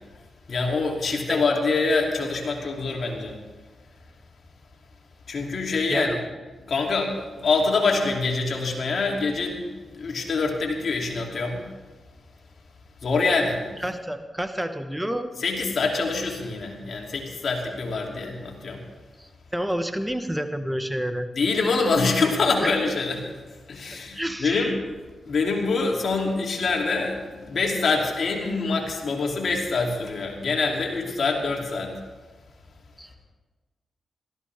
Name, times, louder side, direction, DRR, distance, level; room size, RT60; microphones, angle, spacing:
voice 1, 0.5-3.4 5.3-6.2 6.7-11.7 13.0-13.6 15.4-18.8 21.3-23.2 23.7-24.8 25.3-32.0, left 3 dB, 65° left, 0 dB, 2.9 m, -25 dB
voice 2, 5.9-6.2 13.8-15.3 19.2-21.3 22.6-22.7 23.9-24.8 33.0-33.3, equal, 10° right, 8 dB, 1.1 m, -29 dB
18.0 x 14.0 x 3.5 m, 1.3 s
supercardioid pair, 40°, 0 cm